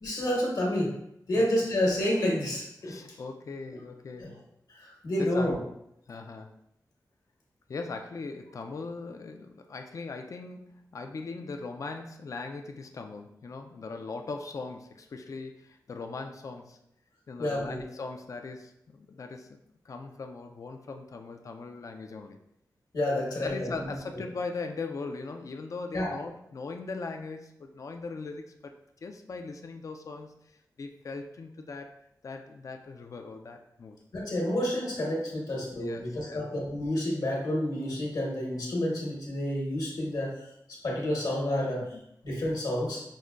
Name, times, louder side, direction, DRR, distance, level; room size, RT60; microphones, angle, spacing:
voice 1, 0.0-0.9 1.3-2.9 3.7-3.8 4.2-4.3 4.7-5.6 17.4-17.8 22.9-23.9 25.9-26.1 34.1-40.3 40.7-41.9 42.2-43.0, left 1 dB, 70° left, -2 dB, 1.1 m, -29 dB
voice 2, 2.8-4.4 5.2-5.6 6.1-6.6 7.7-16.8 17.3-19.6 19.9-22.4 23.4-28.7 29.0-30.3 30.8-31.9 32.2-34.0 35.7-36.5 41.9-42.0, left 4 dB, 50° left, 5 dB, 0.3 m, -39 dB
5.1 x 2.1 x 2.4 m, 0.77 s
cardioid pair, 65°, 7 cm